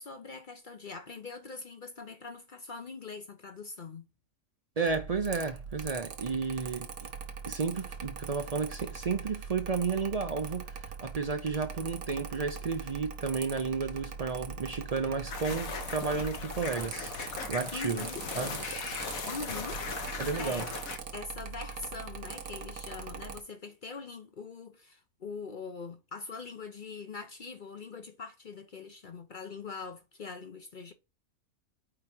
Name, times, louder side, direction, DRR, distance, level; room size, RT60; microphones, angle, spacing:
voice 1, 0.0-4.1 17.7-18.2 19.3-20.7 21.1-30.9, left 4 dB, 45° left, 0.7 m, -43 dB
voice 2, 4.8-6.9 7.5-17.1 17.5-18.0 18.3-18.6 20.2-20.7, right 5 dB, 60° right, 0.3 m, -32 dB
Mechanical fan, 4.9-23.4, right 6 dB, 80° right, 1.4 m, -42 dB
sound 1, 15.3-21.0, left 5 dB, 70° left, 1.6 m, -38 dB
5.0 x 4.6 x 5.3 m
omnidirectional pair, 1.5 m